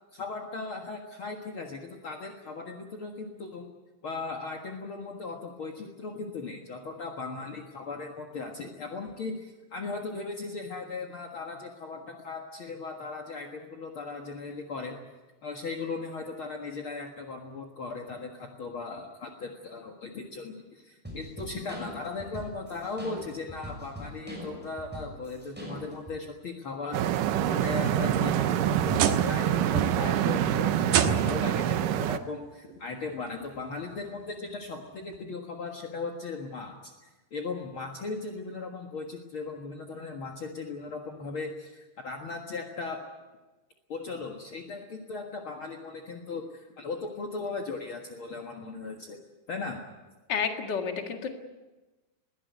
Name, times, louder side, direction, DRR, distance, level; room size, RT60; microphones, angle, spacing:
voice 1, 0.1-3.7 4.0-15.0 15.4-43.0 43.9-49.2 49.5-49.8, left 3 dB, 65° left, 2 dB, 1.3 m, -38 dB
sound 1, 21.0-26.2, equal, ahead, 6.2 m, -42 dB
sound 2, 26.9-32.2, right 11 dB, 90° right, 1.9 m, -26 dB
sound 3, 28.0-29.4 29.7-30.2 30.9-31.6 32.7-32.8 33.5-33.6 35.1-35.2, right 8 dB, 65° right, 2.1 m, -28 dB
voice 2, 50.3-51.4, left 6 dB, 45° left, 4 dB, 1.4 m, -30 dB
21.5 x 16.5 x 9.4 m, 1.2 s
omnidirectional pair, 5.0 m